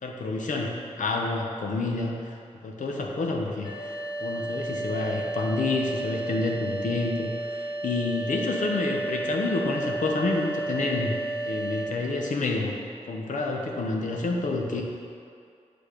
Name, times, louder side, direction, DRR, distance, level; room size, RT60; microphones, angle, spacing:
voice 1, 0.0-2.4 2.6-11.2 11.4-12.7 13.1-14.8, left 3 dB, 80° left, 0 dB, 0.8 m, -29 dB
sound 1, 3.6-11.8, right 2 dB, 40° left, 0.9 m, -32 dB
7.8 x 3.4 x 5.0 m, 2.4 s
wide cardioid pair, 85°, 13 cm